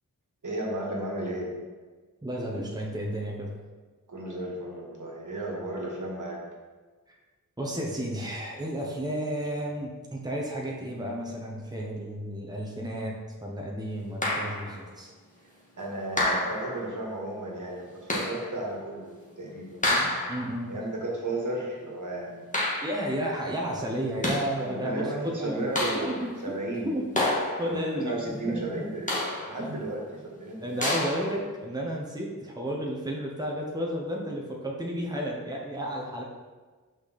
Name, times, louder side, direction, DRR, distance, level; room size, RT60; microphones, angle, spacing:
voice 1, 0.4-1.6 4.1-6.4 15.8-20.3 20.7-22.5 24.5-27.0 27.7-30.9, right 1 dB, 60° right, -2 dB, 1.8 m, -34 dB
voice 2, 2.2-3.5 7.6-15.1 19.9-20.7 22.8-26.6 26.8-27.1 27.6-28.8 29.6-29.7 30.6-36.2, equal, 10° right, -2 dB, 1.1 m, -32 dB
sound 1, 14.2-14.8 16.2-16.9 18.1-18.5 19.8-20.6 22.5-23.2 24.0-24.6 25.8-26.4 27.1-27.9 29.1-29.7 30.8-31.4, left 1 dB, 20° left, 1.8 m, -29 dB
6.2 x 5.7 x 4.2 m, 1.4 s
wide cardioid pair, 75°, 34 cm